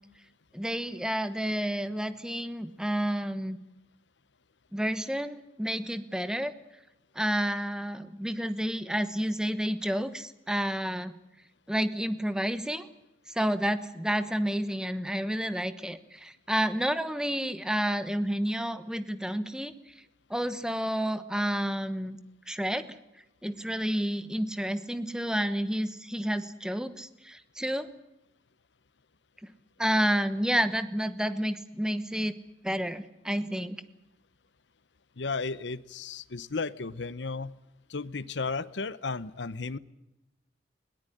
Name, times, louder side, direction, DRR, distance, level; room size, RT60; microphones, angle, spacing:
voice 1, 0.5-3.6 4.7-6.5 7.1-11.2 11.7-12.9 13.3-19.9 20.3-22.2 22.5-23.0 23.4-27.9 29.8-32.3 32.6-33.8, equal, 5° right, 12 dB, 1.1 m, -30 dB
voice 2, 35.2-37.5 37.9-39.8, left 4 dB, 85° left, 17 dB, 0.9 m, -34 dB
21.0 x 18.0 x 10.0 m, 0.91 s
head